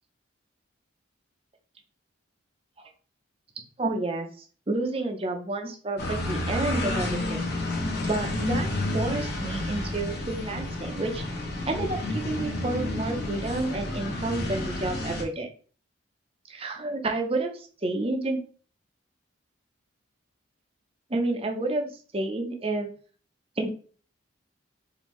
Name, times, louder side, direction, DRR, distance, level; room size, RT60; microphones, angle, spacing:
voice 1, 3.8-7.4 8.0-8.7 8.9-11.2 11.7-15.5 16.5-18.4 21.1-22.9 23.6-23.7, right 2 dB, 30° right, 4 dB, 0.5 m, -30 dB
sound 1, 6.0-15.2, left 1 dB, 50° left, 0.9 m, -30 dB
4.3 x 2.6 x 3.1 m, 0.41 s
head